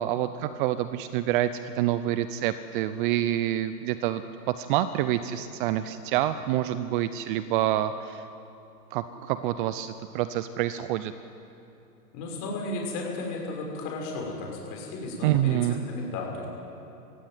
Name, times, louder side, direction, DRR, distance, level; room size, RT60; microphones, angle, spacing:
voice 1, 0.0-4.2 4.6-8.2 8.9-11.1 15.2-15.8, right 13 dB, 35° right, 13 dB, 0.6 m, -27 dB
voice 2, 12.1-15.6 15.9-16.5, left 2 dB, 40° left, -1 dB, 6.4 m, -34 dB
17.5 x 16.0 x 9.4 m, 2.9 s
hypercardioid pair, 120°, 47 cm